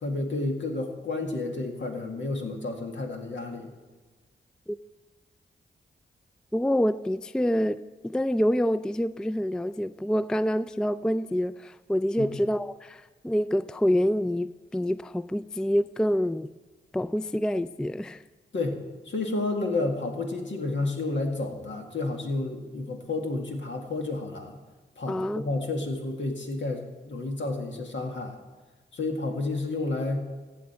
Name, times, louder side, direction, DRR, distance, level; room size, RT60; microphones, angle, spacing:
voice 1, 0.0-3.7 12.2-12.3 18.5-18.8 19.1-24.6 25.0-28.3 28.9-30.3, left 2 dB, 65° left, 3 dB, 1.8 m, -30 dB
voice 2, 6.5-7.8 8.0-16.5 16.9-18.2 25.1-25.4, equal, 5° left, 15 dB, 0.3 m, -27 dB
15.0 x 7.7 x 4.4 m, 1.3 s
supercardioid pair, 40°, 20 cm